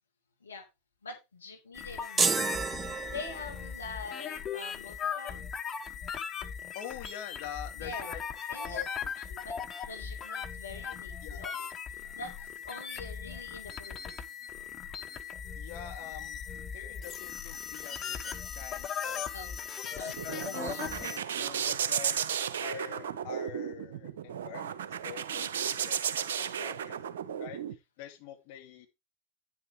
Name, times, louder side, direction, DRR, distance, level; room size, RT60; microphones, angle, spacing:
voice 1, 1.0-2.5 2.8-5.5 7.8-8.2 8.5-8.8 9.3-9.6 9.9-11.7 12.1-14.2 19.3-19.5 19.9-20.8 26.4-27.1, left 3 dB, 80° left, 2 dB, 1.9 m, -45 dB
sound 1, 1.7-21.2, left 7 dB, 30° left, 1.0 m, -39 dB
sound 2, 2.2-3.7, right 4 dB, 20° right, 0.5 m, -30 dB
voice 2, 6.7-8.2 8.6-9.1 11.2-11.4 15.6-16.4 16.7-19.3 20.2-22.3 22.6-27.0 27.4-27.6 28.0-28.9, left 10 dB, 55° left, 4 dB, 2.3 m, -45 dB
sound 3, 19.8-27.7, right 8 dB, 70° right, 0.6 m, -34 dB
9.5 x 8.0 x 3.4 m, 0.23 s
figure-of-eight pair, 85°, 0 cm